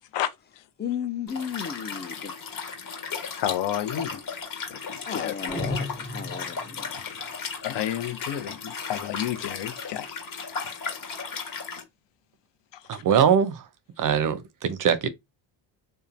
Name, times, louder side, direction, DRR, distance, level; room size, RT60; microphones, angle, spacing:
voice 1, 0.8-2.3 5.1-7.0, left 8 dB, 25° left, 0.4 m, -34 dB
Liquid, 1.3-11.8, left 5 dB, 45° left, 1.2 m, -36 dB
voice 2, 3.1-4.2 4.7-5.5 6.9-10.2 10.6-10.8 12.9-13.0, left 11 dB, 60° left, 0.7 m, -32 dB
sound 1, 5.5-6.9, left 2 dB, 5° left, 1.1 m, -34 dB
voice 3, 12.9-13.6 14.0-15.1, right 8 dB, 45° right, 0.5 m, -22 dB
2.9 x 2.1 x 2.4 m
supercardioid pair, 80°, 48 cm